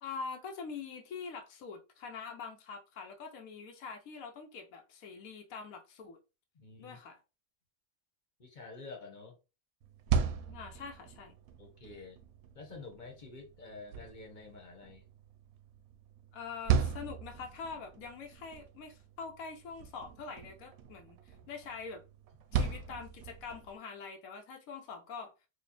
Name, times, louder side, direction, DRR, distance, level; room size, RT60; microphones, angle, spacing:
voice 1, 0.0-6.2 6.8-7.2 10.5-11.3 16.3-22.0 22.5-25.3, left 5 dB, 90° left, 1.1 m, -44 dB
voice 2, 6.5-7.0 8.4-9.3 11.6-12.2 12.5-15.0, left 3 dB, 35° left, 1.1 m, -49 dB
sound 1, 9.8-23.8, right 6 dB, 85° right, 1.0 m, -38 dB
4.5 x 2.4 x 2.9 m
omnidirectional pair, 1.4 m